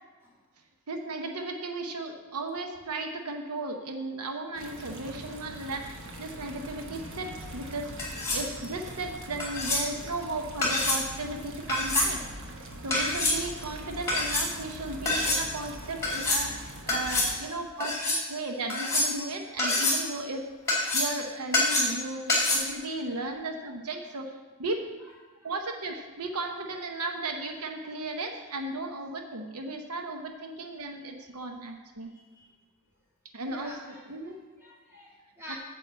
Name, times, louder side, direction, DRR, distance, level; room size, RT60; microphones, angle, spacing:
voice 1, 0.9-12.2 12.8-20.5 20.9-24.3 24.6-24.8 25.4-32.1 33.3-34.4 35.5-35.6, right 2 dB, 85° right, 4 dB, 0.9 m, -35 dB
sound 1, 4.6-17.4, right 1 dB, 60° right, 1.1 m, -42 dB
sound 2, 8.0-8.5 9.4-9.8 10.6-11.0 11.7-12.1 12.9-13.4 14.1-14.5 15.1-15.4 16.0-16.5 16.9-17.3 17.8-18.2 18.7-19.3 19.6-20.0 20.7-21.2 21.5-22.0 22.3-22.6, left 2 dB, 15° left, 2.6 m, -26 dB
voice 2, 32.1-32.5 33.5-35.6, equal, 10° right, -5 dB, 2.4 m, -48 dB
8.7 x 4.7 x 7.5 m, 1.4 s
head